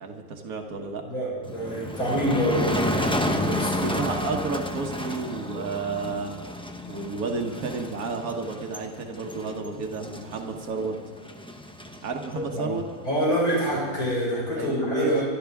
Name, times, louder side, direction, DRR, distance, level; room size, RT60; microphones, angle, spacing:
voice 1, 0.0-1.0 3.7-6.3 6.9-10.9 12.0-12.8 14.6-15.2, right 4 dB, 75° right, 2 dB, 1.6 m, -31 dB
voice 2, 1.0-4.0 12.3-12.8 13.0-15.2, equal, 80° left, -6 dB, 6.3 m, -27 dB
Motor vehicle (road), 1.4-14.1, left 1 dB, 5° left, 0.5 m, -32 dB
25.5 x 12.5 x 3.5 m, 1.5 s
omnidirectional pair, 1.5 m